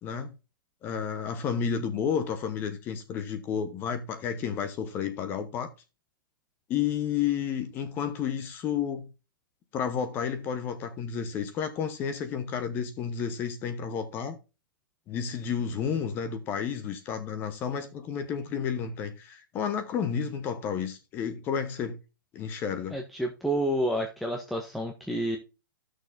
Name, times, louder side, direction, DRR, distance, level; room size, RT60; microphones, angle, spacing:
voice 1, 0.0-0.3 0.8-5.7 6.7-9.1 9.7-14.4 15.1-22.0 22.3-23.0, left 7 dB, 20° left, 1.0 m, -31 dB
voice 2, 22.9-25.4, right 1 dB, ahead, 0.6 m, -29 dB
13.0 x 6.4 x 2.6 m
hypercardioid pair, 160°, 11 cm